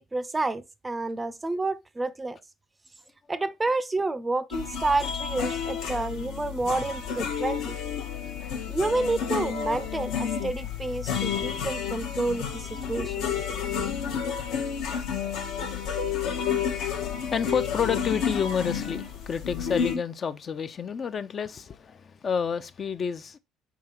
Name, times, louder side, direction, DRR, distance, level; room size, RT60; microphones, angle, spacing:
voice 1, 0.0-2.4 3.3-7.8 8.7-13.4 13.8-13.9, right 2 dB, 20° right, 0.4 m, -29 dB
sound 1, 4.5-20.0, left 7 dB, 65° left, 0.7 m, -30 dB
voice 2, 17.3-23.4, left 6 dB, 40° left, 0.4 m, -29 dB
4.7 x 3.6 x 2.9 m
hypercardioid pair, 60°, 0 cm